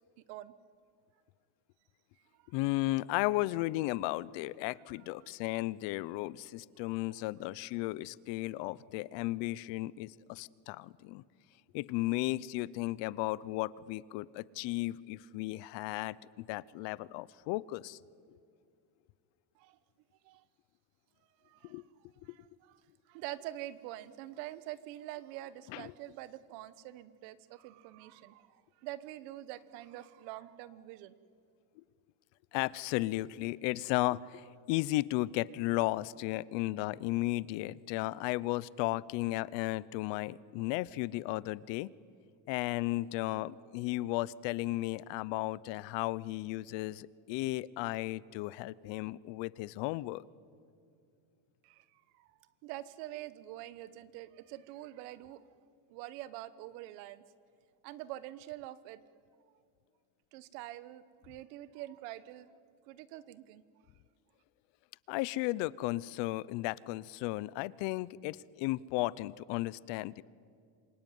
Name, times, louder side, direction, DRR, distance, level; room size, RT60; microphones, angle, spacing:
voice 1, 2.5-11.2 11.7-18.0 21.6-21.8 25.7-25.9 32.5-41.9 42.5-50.2 65.1-70.2, left 18 dB, 65° left, 21 dB, 0.8 m, -34 dB
voice 2, 5.0-5.3 6.8-6.9 19.5-19.8 20.2-20.4 21.4-21.8 22.2-22.8 23.1-31.1 51.6-55.5 55.9-57.2 57.8-59.0 60.3-62.5 62.9-63.6, right 14 dB, 85° right, 15 dB, 1.3 m, -46 dB
27.0 x 23.0 x 9.4 m, 2.3 s
cardioid pair, 160°, 47 cm